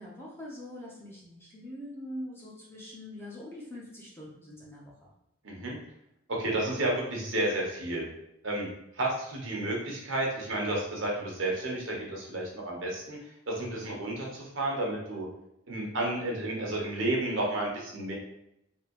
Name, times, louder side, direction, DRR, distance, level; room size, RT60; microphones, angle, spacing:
voice 1, 0.0-4.9, left 1 dB, 10° left, -5 dB, 0.7 m, -43 dB
voice 2, 5.4-5.8 6.3-8.1 8.4-8.7 9.0-13.2 13.5-15.3 15.7-18.1, right 1 dB, 65° right, -2 dB, 1.0 m, -31 dB
3.6 x 2.9 x 3.0 m, 0.81 s
head